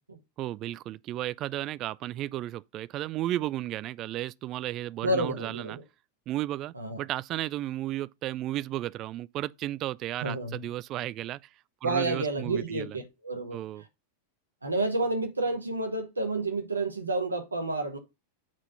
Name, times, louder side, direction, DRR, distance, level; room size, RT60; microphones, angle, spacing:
voice 1, 0.4-5.8 6.3-11.4 11.8-13.0 13.5-13.8, right 14 dB, 35° right, 0.3 m, -34 dB
voice 2, 5.0-5.8 6.7-7.0 10.2-10.6 11.8-13.6 14.6-18.0, right 2 dB, 80° right, 1.4 m, -30 dB
7.3 x 3.7 x 5.7 m
figure-of-eight pair, 90°, 0 cm